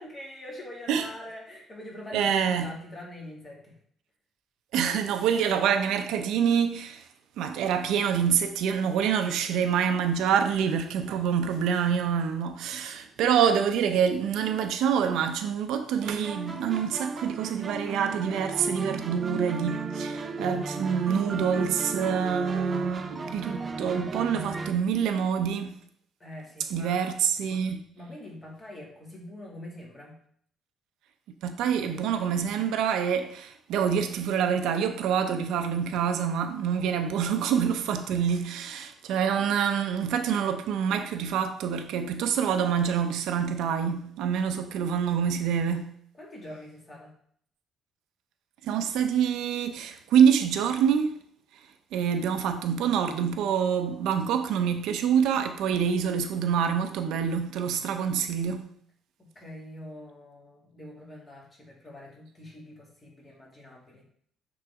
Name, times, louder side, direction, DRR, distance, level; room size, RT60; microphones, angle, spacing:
voice 1, 0.0-3.8 10.3-10.5 26.2-27.0 28.0-30.2 46.2-47.1 59.2-64.1, left 1 dB, 25° left, 2.5 m, -44 dB
voice 2, 2.1-2.7 4.7-7.0 7.4-25.7 26.7-27.8 31.4-45.9 48.6-51.2 51.9-58.7, right 7 dB, 85° right, 0.7 m, -26 dB
sound 1, 16.0-24.7, right 3 dB, 25° right, 0.8 m, -34 dB
8.9 x 4.0 x 3.7 m
cardioid pair, 140°, 0 cm